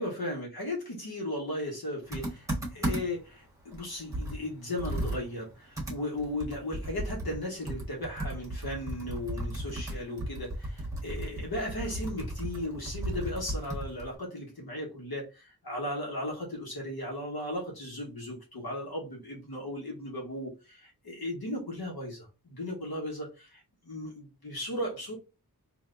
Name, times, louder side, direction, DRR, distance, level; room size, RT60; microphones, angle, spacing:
voice 1, 0.0-25.1, left 1 dB, 75° left, 1.5 m, -36 dB
Computer keyboard, 2.1-3.3 3.7-3.8 4.1-7.4 7.7-14.1, right 1 dB, 10° right, 1.5 m, -35 dB
3.3 x 2.8 x 3.8 m
wide cardioid pair, 85°, 38 cm